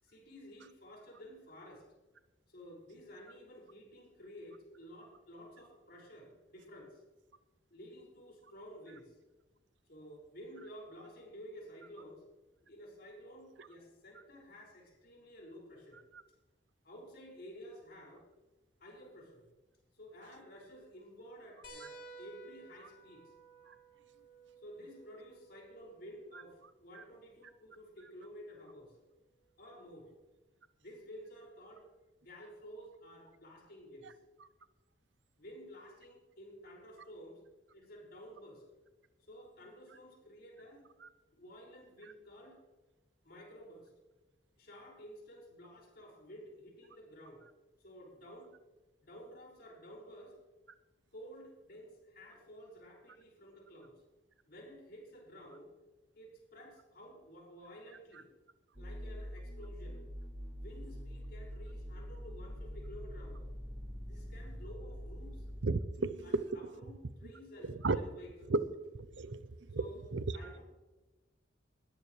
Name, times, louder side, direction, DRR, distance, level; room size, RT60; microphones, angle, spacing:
voice 1, 0.0-1.8 2.5-7.0 7.7-9.1 9.9-12.2 12.6-16.0 16.8-18.3 18.8-19.5 19.9-23.3 24.6-28.9 29.6-30.1 30.8-31.9 32.2-34.1 35.4-37.4 37.7-38.6 39.3-40.8 41.3-42.6 43.2-43.9 44.6-47.4 47.8-48.5 49.0-50.4 51.1-53.9 54.5-55.7 56.1-58.3 58.8-60.0 60.6-63.5 64.0-65.4 66.2-68.5 69.7-70.1 70.3-70.6, equal, 60° left, -2 dB, 5.8 m, -52 dB
sound 1, 21.6-26.7 28.2-28.3 30.0-30.1, right 3 dB, 75° left, 4.4 m, -55 dB
sound 2, 58.7-65.6, equal, 45° right, 3.8 m, -44 dB
voice 2, 65.6-66.4 67.6-68.0 68.5-68.6 69.2-69.8 70.1-70.4, right 3 dB, 75° right, 13 dB, 0.7 m, -33 dB
20.0 x 14.0 x 3.3 m, 1.1 s
head